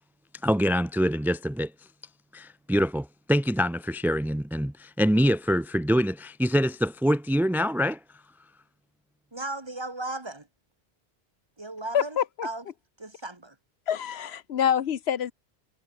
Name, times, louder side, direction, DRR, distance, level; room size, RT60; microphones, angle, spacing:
voice 1, 0.4-1.7 2.3-8.0, equal, 5° right, 0.3 m, -25 dB
voice 2, 9.3-10.5 11.6-12.6 13.0-13.5, right 2 dB, 25° right, 1.5 m, -36 dB
voice 3, 11.9-12.5 13.9-15.3, left 9 dB, 85° left, 1.1 m, -26 dB
omnidirectional pair, 1.1 m